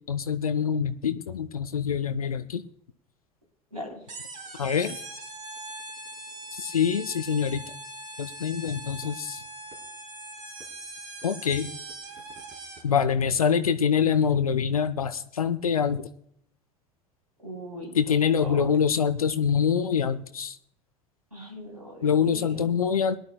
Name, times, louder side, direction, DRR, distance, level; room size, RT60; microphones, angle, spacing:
voice 1, 0.1-2.6 4.6-5.0 6.5-7.6 8.2-9.4 11.2-11.7 12.8-16.1 17.9-20.6 22.0-23.2, left 7 dB, 80° left, 11 dB, 0.6 m, -25 dB
sound 1, 4.1-13.0, right 2 dB, 40° right, 3.3 m, -41 dB
voice 2, 17.4-17.9 18.4-18.7 21.3-22.7, equal, 90° right, -1 dB, 3.3 m, -39 dB
22.5 x 11.0 x 2.2 m, 0.70 s
figure-of-eight pair, 70°, 18 cm